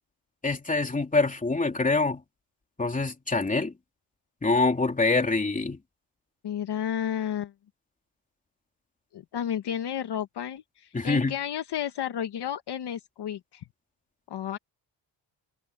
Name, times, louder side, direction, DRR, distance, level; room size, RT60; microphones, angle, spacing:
voice 1, 0.4-2.2 2.8-3.7 4.4-5.8 10.9-11.3, left 3 dB, 15° left, 3.2 m, -25 dB
voice 2, 6.4-7.5 9.1-13.6 14.3-14.6, left 9 dB, 60° left, 1.3 m, -32 dB
cardioid pair, 145°, 46 cm